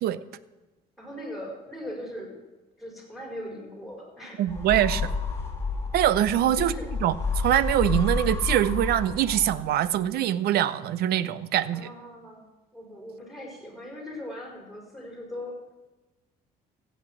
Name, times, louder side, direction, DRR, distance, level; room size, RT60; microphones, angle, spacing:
voice 1, 1.0-2.4 2.8-4.5 6.6-6.9 11.7-12.5 12.7-15.6, left 1 dB, ahead, 4.8 m, -39 dB
voice 2, 4.4-5.1 5.9-6.7 7.0-7.1 7.4-11.9, right 11 dB, 70° right, 0.6 m, -23 dB
sound 1, 4.5-9.8, left 4 dB, 15° left, 2.4 m, -30 dB
15.0 x 8.1 x 6.1 m
cardioid pair, 110°, 17 cm